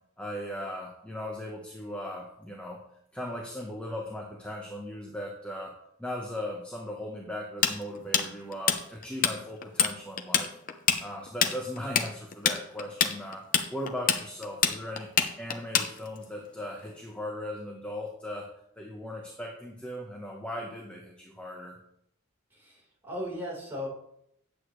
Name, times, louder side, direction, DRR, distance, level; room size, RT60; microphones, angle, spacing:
voice 1, 0.2-2.8 3.1-5.7 6.0-10.5 11.0-13.4 13.7-15.1 15.4-18.5 18.8-21.8, left 1 dB, 5° left, -1 dB, 1.0 m, -38 dB
Tools, 7.6-9.3 9.6-9.9 10.2-16.2, left 7 dB, 40° left, 0.7 m, -25 dB
voice 2, 22.6-23.9, left 1 dB, 10° right, -6 dB, 4.1 m, -37 dB
10.0 x 8.2 x 3.2 m, 0.73 s
head